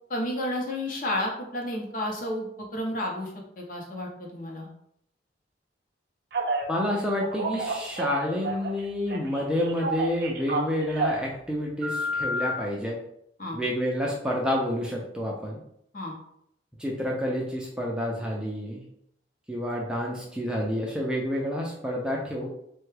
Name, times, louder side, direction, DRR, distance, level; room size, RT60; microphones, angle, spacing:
voice 1, 0.1-2.5 2.7-3.3 3.6-4.7 13.4-13.6 15.9-16.1, left 1 dB, 45° left, 0 dB, 0.7 m, -31 dB
Telephone, 6.3-6.7 7.2-8.8 9.1-11.3 11.8-12.5, right 1 dB, 60° right, 0.5 m, -30 dB
voice 2, 6.7-13.0 13.5-15.6 16.8-18.8 19.5-22.5, equal, 5° right, -2 dB, 0.4 m, -29 dB
3.3 x 2.2 x 3.2 m, 0.74 s
head